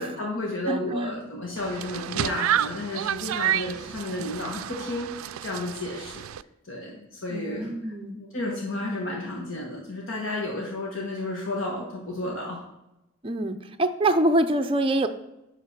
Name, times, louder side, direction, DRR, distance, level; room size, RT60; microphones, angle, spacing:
voice 1, 0.0-6.2 6.6-12.6, left 1 dB, 70° left, -2 dB, 1.5 m, -32 dB
voice 2, 0.7-1.2 7.3-8.2 13.2-15.1, right 1 dB, 25° right, 7 dB, 0.5 m, -25 dB
sound 1, 1.6-6.4, right 11 dB, 85° right, 0.3 m, -30 dB
9.9 x 4.0 x 5.8 m, 0.93 s
head